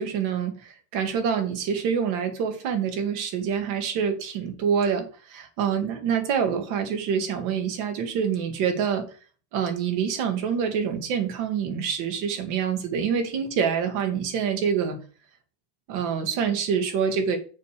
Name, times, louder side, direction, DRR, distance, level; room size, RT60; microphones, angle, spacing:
voice 1, 0.0-9.1 9.5-15.0 15.9-17.4, right 7 dB, 50° right, 6 dB, 2.0 m, -26 dB
6.7 x 5.2 x 6.6 m, 0.38 s
supercardioid pair, 165°, 0 cm